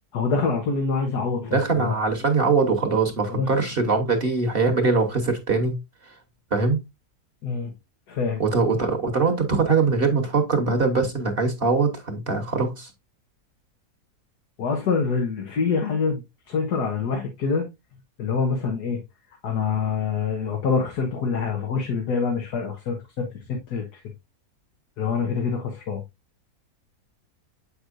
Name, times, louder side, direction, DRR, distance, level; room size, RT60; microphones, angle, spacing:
voice 1, 0.1-1.9 3.3-3.5 7.4-7.7 8.1-8.4 14.6-17.6 18.2-19.0 19.4-24.0 25.0-26.0, left 5 dB, 85° left, 1.7 m, -25 dB
voice 2, 1.4-5.8 6.1-6.2 6.5-6.8 8.4-12.9, right 4 dB, 40° right, 1.3 m, -22 dB
7.7 x 6.0 x 2.5 m
omnidirectional pair, 1.7 m